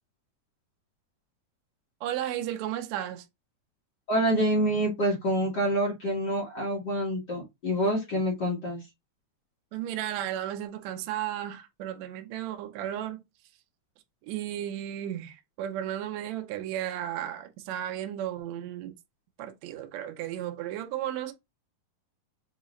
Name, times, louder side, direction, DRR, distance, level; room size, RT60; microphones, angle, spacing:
voice 1, 2.0-3.2 9.7-13.2 14.2-19.0 19.4-21.3, right 11 dB, 80° right, 1.6 m, -34 dB
voice 2, 4.1-8.8, right 1 dB, 55° left, 1.1 m, -27 dB
6.5 x 2.5 x 3.0 m
omnidirectional pair, 4.0 m